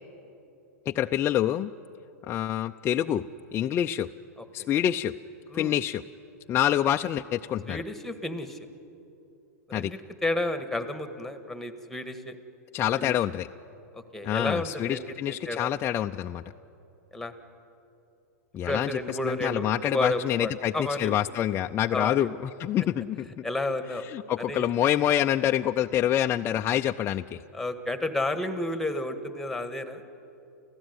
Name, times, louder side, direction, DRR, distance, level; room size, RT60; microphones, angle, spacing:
voice 1, 0.9-1.7 2.3-3.2 3.5-4.1 4.5-5.1 5.5-6.0 6.5-7.8 9.7-9.9 12.7-13.5 14.2-16.4 18.5-23.4 24.1-27.4, left 11 dB, 30° left, 4 dB, 0.5 m, -26 dB
voice 2, 4.4-4.7 5.5-5.8 7.7-8.6 9.7-12.4 13.0-13.2 13.9-15.7 17.1-17.3 18.6-21.2 21.9-22.3 23.4-24.1 24.4-24.8 27.5-30.0, left 2 dB, 5° left, 8 dB, 1.7 m, -31 dB
30.0 x 15.0 x 9.6 m, 2.8 s
hypercardioid pair, 120°, 9 cm